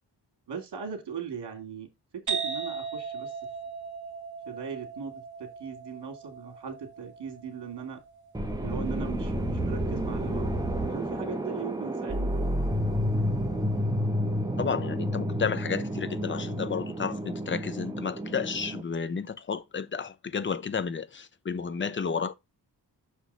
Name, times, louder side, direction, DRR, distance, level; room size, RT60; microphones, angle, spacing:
voice 1, 0.5-3.3 4.5-8.0 8.6-12.3, right 6 dB, 85° right, 2.6 m, -39 dB
sound 1, 2.3-9.7, right 5 dB, 45° right, 1.7 m, -38 dB
sound 2, 8.3-18.8, equal, 10° right, 0.9 m, -30 dB
voice 2, 14.6-22.3, left 6 dB, 30° left, 0.5 m, -32 dB
6.4 x 5.0 x 5.5 m
wide cardioid pair, 170°, 40 cm